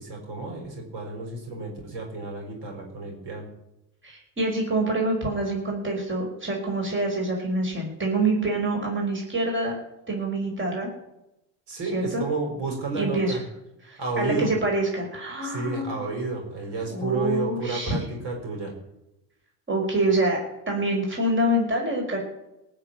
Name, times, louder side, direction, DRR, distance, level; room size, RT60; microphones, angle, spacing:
voice 1, 0.0-3.5 11.7-13.4 14.0-14.5 15.4-18.7, right 3 dB, 55° right, 2 dB, 6.4 m, -31 dB
voice 2, 4.0-9.8 10.1-10.9 11.9-12.3 12.9-13.4 13.8-16.0 16.9-18.0 19.7-20.4 20.7-22.2, right 2 dB, 25° right, 0 dB, 5.3 m, -26 dB
18.5 x 6.8 x 9.0 m, 0.90 s
supercardioid pair, 85°, 48 cm